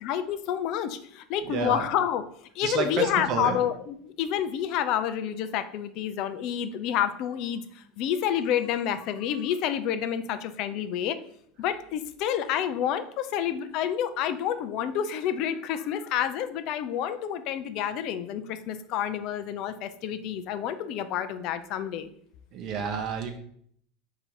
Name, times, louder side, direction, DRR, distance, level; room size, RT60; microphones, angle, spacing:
voice 1, 0.0-2.2 2.6-11.2 11.6-22.1, left 9 dB, 60° left, 11 dB, 0.4 m, -29 dB
voice 2, 1.4-1.8 2.6-3.6 22.5-23.4, right 5 dB, 55° right, 4 dB, 0.7 m, -30 dB
3.8 x 2.8 x 4.6 m, 0.66 s
hypercardioid pair, 90°, 0 cm